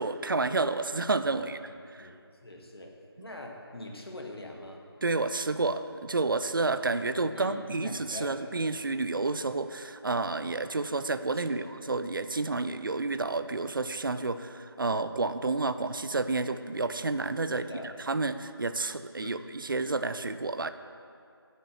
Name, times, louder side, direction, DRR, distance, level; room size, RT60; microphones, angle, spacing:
voice 1, 0.0-2.1 3.2-3.3 5.0-20.7, right 3 dB, 55° right, 11 dB, 0.5 m, -30 dB
voice 2, 2.0-3.0 3.2-4.9 7.3-8.3 11.3-11.7 17.5-17.9 19.2-19.4, left 1 dB, 65° left, 1 dB, 1.8 m, -43 dB
8.4 x 7.7 x 7.9 m, 2.4 s
figure-of-eight pair, 165°, 13 cm